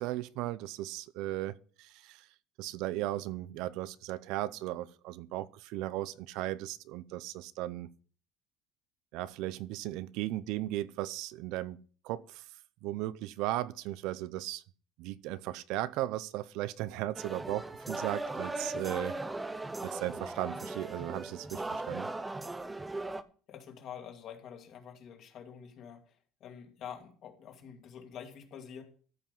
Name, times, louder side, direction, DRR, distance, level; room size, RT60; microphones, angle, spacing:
voice 1, 0.0-2.3 2.6-7.9 9.1-11.8 12.0-12.4 12.8-14.6 15.0-19.2 19.8-22.1, right 15 dB, 60° right, 0.5 m, -36 dB
sound 1, 17.1-23.2, right 2 dB, 10° right, 0.6 m, -38 dB
voice 2, 23.5-28.8, left 8 dB, 40° left, 2.3 m, -47 dB
13.5 x 5.8 x 5.5 m
cardioid pair, 160°, 0 cm